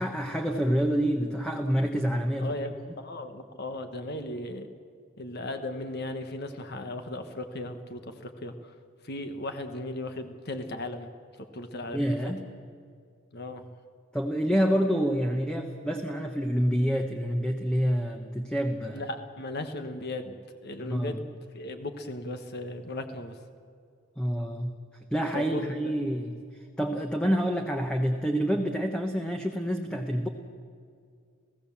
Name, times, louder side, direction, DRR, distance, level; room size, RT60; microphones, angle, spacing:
voice 1, 0.0-2.6 11.9-12.5 14.1-19.0 20.8-21.2 24.2-24.7 25.1-26.4 26.8-30.3, equal, 5° left, 3 dB, 1.0 m, -27 dB
voice 2, 2.4-4.7 5.2-8.7 9.0-11.1 11.5-12.2 13.3-13.7 18.9-20.4 20.6-21.2 21.5-23.3 25.3-26.0, left 1 dB, 50° left, 7 dB, 1.3 m, -36 dB
29.5 x 16.0 x 7.2 m, 2.2 s
head